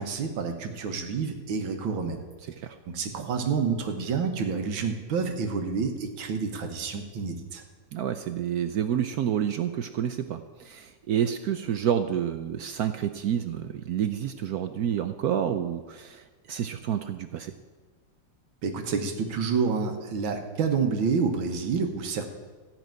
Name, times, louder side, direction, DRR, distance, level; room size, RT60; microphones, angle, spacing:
voice 1, 0.0-2.2 2.9-7.6 18.6-22.2, right 5 dB, 90° right, 4 dB, 2.0 m, -28 dB
voice 2, 7.9-17.5, right 9 dB, 70° right, 9 dB, 0.9 m, -29 dB
15.0 x 6.1 x 9.0 m, 1.4 s
omnidirectional pair, 2.1 m